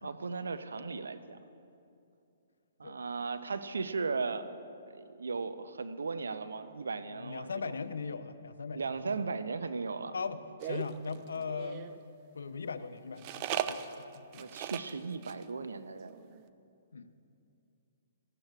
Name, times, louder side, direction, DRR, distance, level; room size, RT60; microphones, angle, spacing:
voice 1, 0.0-1.4 2.8-4.5 4.9-7.7 8.7-10.1 14.4-16.2, right 4 dB, 75° right, 10 dB, 0.6 m, -37 dB
voice 2, 7.1-9.2 10.1-11.9 12.3-14.5 16.9-17.1, left 5 dB, 75° left, 11 dB, 0.6 m, -39 dB
sound 1, 10.6-12.0 13.2-14.9 15.2-15.4 15.7-15.8 16.0-16.4, right 10 dB, 35° right, 0.5 m, -38 dB
17.5 x 14.0 x 2.4 m, 2.6 s
figure-of-eight pair, 130°, 0 cm